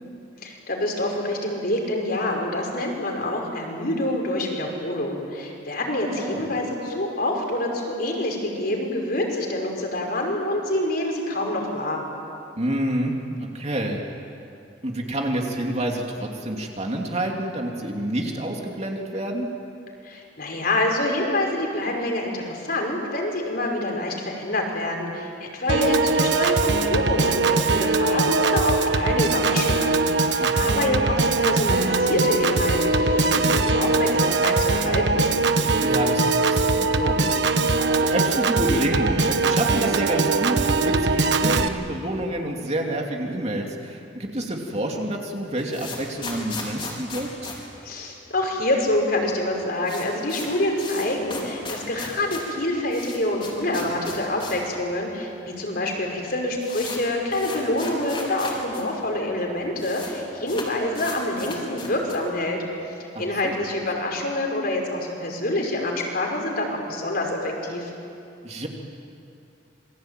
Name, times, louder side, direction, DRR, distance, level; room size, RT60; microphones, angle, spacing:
voice 1, 0.4-12.0 20.0-30.0 30.2-35.3 47.8-67.9, left 1 dB, 50° left, 1 dB, 5.4 m, -26 dB
voice 2, 6.1-6.5 12.6-14.0 14.8-19.5 30.4-30.9 35.8-37.4 38.0-47.5 63.1-63.5 68.4-68.7, right 1 dB, 35° right, 1 dB, 2.8 m, -28 dB
Piano / Organ, 25.7-41.7, right 3 dB, 65° right, 1.3 m, -21 dB
sound 1, 45.5-48.6 48.8-48.9 49.2-49.3 49.5-54.7 55.0-55.1 55.8-55.9 56.1-58.8 59.1-59.2 59.4-60.1 60.4-62.3, left 3 dB, 30° left, 4.9 m, -37 dB
27.5 x 23.0 x 9.1 m, 2.6 s
head